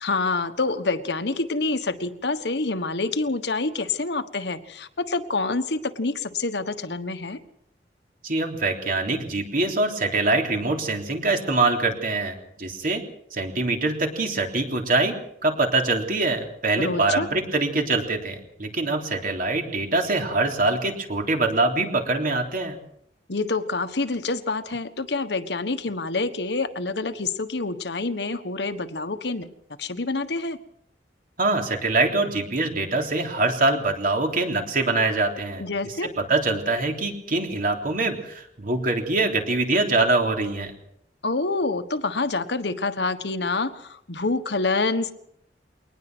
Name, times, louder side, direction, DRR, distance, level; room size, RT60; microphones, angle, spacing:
voice 1, 0.0-7.4 16.8-17.3 23.3-29.5 29.8-30.6 35.6-36.1 41.2-45.1, left 3 dB, 70° left, 9 dB, 1.4 m, -27 dB
voice 2, 8.2-13.0 13.3-15.1 15.4-22.8 31.4-40.7, right 2 dB, 50° right, 3 dB, 3.5 m, -24 dB
22.5 x 19.0 x 6.2 m, 0.75 s
head